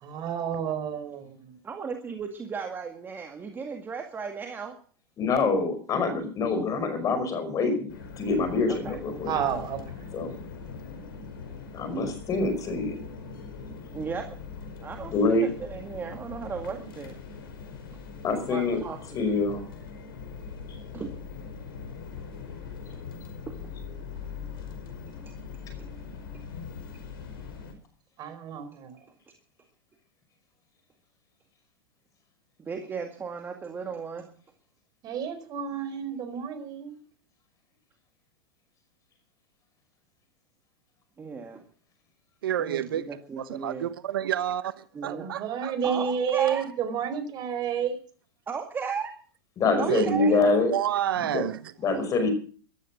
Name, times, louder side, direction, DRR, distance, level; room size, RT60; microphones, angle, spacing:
voice 1, 0.0-1.5 9.3-9.8 28.2-28.9 35.0-37.0 45.0-48.0, right 8 dB, 35° right, 4.4 m, -30 dB
voice 2, 1.6-4.7 8.7-9.0 13.9-14.4 14.8-17.1 17.9-18.0 18.5-19.3 20.9-21.1 23.5-23.6 25.3-25.4 32.7-34.3 41.2-41.6 42.6-43.9 44.9-45.3 45.8-46.6 48.5-49.1 49.8-50.4, right 5 dB, 15° right, 2.0 m, -35 dB
voice 3, 5.2-9.4 10.1-10.3 11.7-13.0 15.1-15.5 18.2-18.8 19.1-19.6 49.6-50.8 51.2-51.5 51.8-52.3, left 3 dB, 30° left, 5.3 m, -25 dB
sound 1, 7.9-27.7, left 5 dB, 70° left, 5.2 m, -41 dB
voice 4, 42.4-43.1 43.4-46.0 49.9-51.6, right 11 dB, 75° right, 1.0 m, -30 dB
15.0 x 13.0 x 6.0 m
hypercardioid pair, 120°, 12 cm